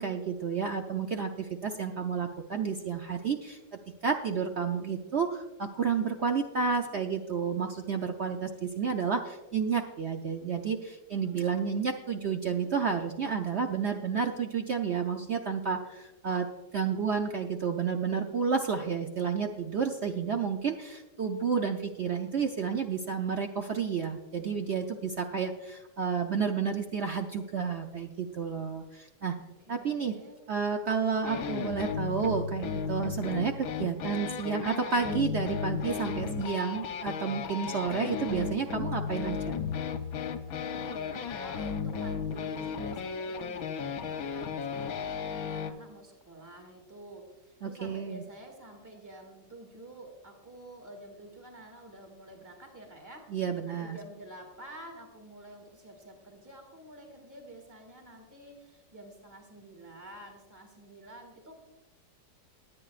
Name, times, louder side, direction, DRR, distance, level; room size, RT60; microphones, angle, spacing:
voice 1, 0.0-3.6 4.0-16.5 16.7-29.3 29.7-30.2 30.5-39.4 47.6-48.2 53.3-54.0, right 6 dB, 65° right, 4 dB, 0.6 m, -31 dB
voice 2, 11.1-12.2 12.5-12.7 29.4-30.4 37.6-38.1 40.7-53.3 53.6-61.5, right 1 dB, 10° right, 2 dB, 2.0 m, -49 dB
sound 1, 31.2-45.7, left 6 dB, 60° left, 1.1 m, -35 dB
20.5 x 8.8 x 2.5 m, 1.1 s
omnidirectional pair, 1.9 m